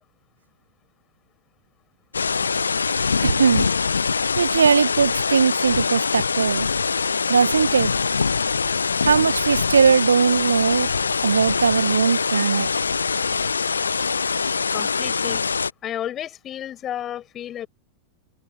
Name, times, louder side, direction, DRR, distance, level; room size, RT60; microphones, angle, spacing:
sound 1, 2.1-15.7, left 5 dB, 75° left, 0.5 m, -23 dB
voice 1, 3.2-3.7 4.4-6.7 7.3-7.9 9.0-10.9 11.2-12.7, right 6 dB, 70° right, 0.6 m, -19 dB
voice 2, 13.5-14.2 14.7-15.4 15.8-17.7, left 11 dB, 30° left, 5.9 m, -33 dB
open air
figure-of-eight pair, 90°, 0 cm